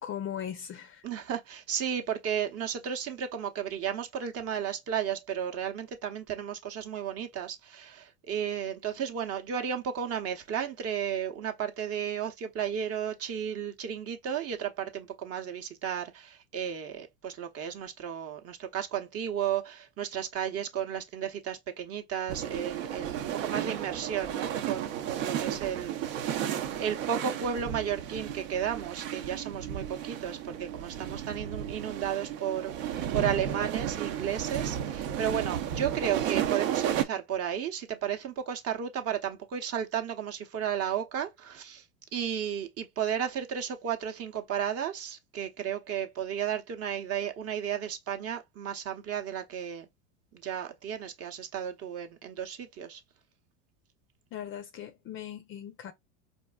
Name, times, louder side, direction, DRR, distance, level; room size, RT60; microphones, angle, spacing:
voice 1, 0.0-1.1 54.3-55.9, left 9 dB, 30° left, 0.5 m, -39 dB
voice 2, 1.0-26.3 26.8-41.8 42.1-49.9 50.4-53.0, right 8 dB, 35° right, 0.7 m, -33 dB
sound 1, 22.3-37.0, right 10 dB, 70° right, 0.7 m, -33 dB
4.4 x 2.5 x 2.2 m
hypercardioid pair, 100°, 40 cm